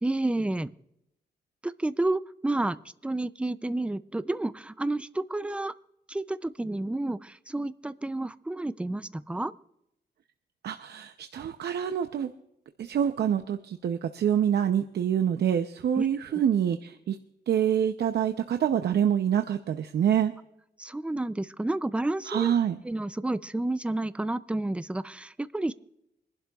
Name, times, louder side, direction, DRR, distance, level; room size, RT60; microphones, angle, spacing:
voice 1, 0.0-0.7 1.6-2.8 3.0-5.7 6.1-9.5 16.0-16.1 20.8-22.5 22.8-25.7, right 2 dB, 5° right, 14 dB, 0.3 m, -30 dB
voice 2, 10.6-12.3 12.8-17.2 17.5-20.3 22.3-22.8, right 9 dB, 75° right, 7 dB, 0.6 m, -26 dB
25.0 x 11.5 x 2.3 m, 0.80 s
wide cardioid pair, 155°, 17 cm